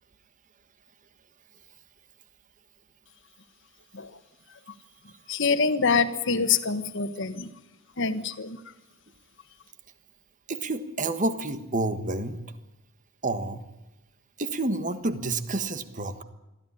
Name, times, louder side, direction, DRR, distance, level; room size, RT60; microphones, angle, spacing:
voice 1, 5.3-7.5 8.0-8.6, left 5 dB, 60° left, 11 dB, 1.5 m, -25 dB
voice 2, 10.5-12.4 13.2-13.6 14.4-16.2, right 2 dB, 35° right, 11 dB, 1.5 m, -29 dB
22.5 x 14.5 x 10.0 m, 0.99 s
head